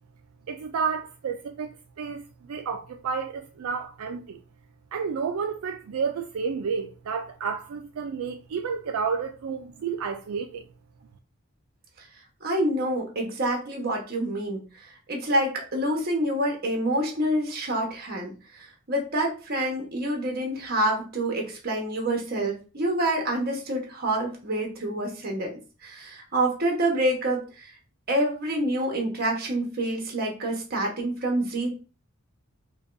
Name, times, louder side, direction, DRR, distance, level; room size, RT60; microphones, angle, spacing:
voice 1, 0.5-4.4 4.9-10.6, right 6 dB, 80° right, 0.4 m, -31 dB
voice 2, 12.4-14.6 15.1-27.7 28.1-31.7, right 1 dB, 45° right, 1.1 m, -27 dB
5.0 x 2.3 x 2.6 m
head